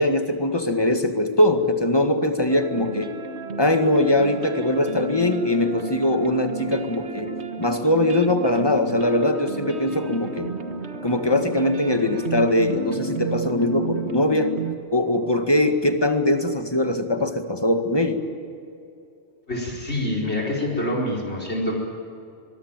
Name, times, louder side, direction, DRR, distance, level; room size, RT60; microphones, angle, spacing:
voice 1, 0.0-3.1 3.6-7.3 7.6-10.5 11.0-14.5 14.9-18.2, left 1 dB, 20° left, 6 dB, 2.0 m, -21 dB
sound 1, 2.5-14.7, right 4 dB, 65° right, 1.9 m, -32 dB
voice 2, 19.5-21.7, left 1 dB, 65° left, 0 dB, 4.9 m, -26 dB
24.5 x 22.5 x 9.0 m, 2.6 s
omnidirectional pair, 1.2 m